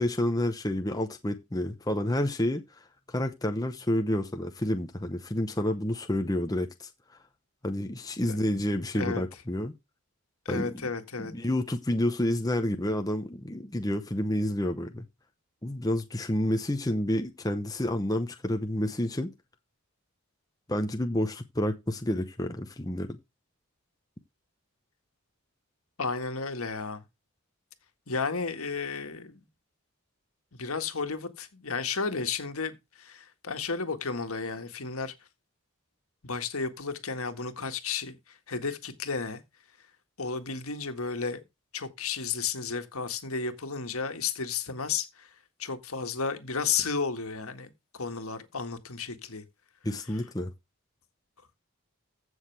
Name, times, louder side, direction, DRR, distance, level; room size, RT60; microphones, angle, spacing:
voice 1, 0.0-2.6 3.1-6.9 7.6-9.7 10.5-10.9 11.2-15.0 15.6-19.3 20.7-23.2 49.8-50.5, left 1 dB, 15° left, 0.8 m, -29 dB
voice 2, 10.5-11.3 26.0-27.0 28.1-29.4 30.5-35.1 36.2-38.2 38.5-39.4 40.2-41.4 41.7-45.3 45.6-49.4, left 5 dB, 75° left, 1.8 m, -33 dB
15.0 x 6.4 x 3.4 m
head